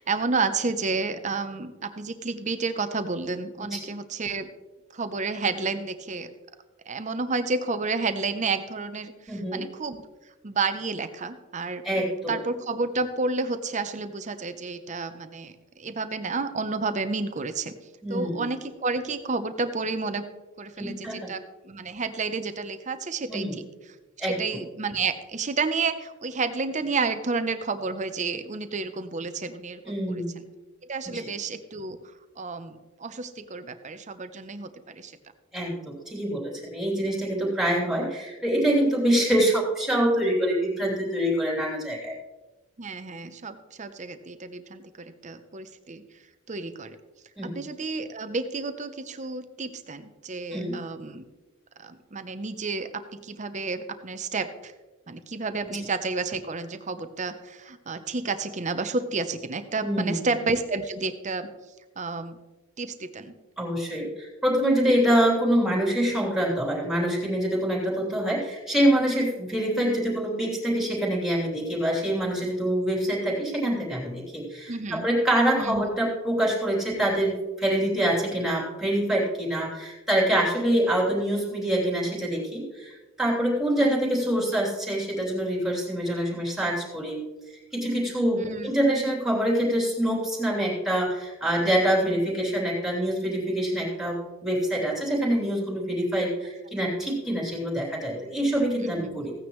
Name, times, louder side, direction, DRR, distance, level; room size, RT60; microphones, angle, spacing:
voice 1, 0.0-4.5 4.9-6.3 6.9-10.0 10.4-17.7 18.1-20.3 20.6-23.5 24.2-30.2 30.8-32.0 32.4-35.1 42.8-46.0 46.5-47.0 47.5-51.3 51.8-54.7 55.1-61.5 62.0-62.4 62.8-63.3 74.7-75.1 75.6-75.8 83.8-83.9 88.3-88.7 98.8-99.2, right 4 dB, 35° right, 10 dB, 0.7 m, -31 dB
voice 2, 9.3-9.6 11.8-12.3 18.0-18.4 20.8-21.3 23.3-23.5 24.2-24.4 29.8-30.3 31.1-31.2 35.5-42.2 47.4-47.6 50.5-50.7 59.8-60.3 63.6-82.9 83.2-87.2 87.7-99.3, right 1 dB, ahead, -4 dB, 3.1 m, -25 dB
16.0 x 9.4 x 3.1 m, 1.2 s
head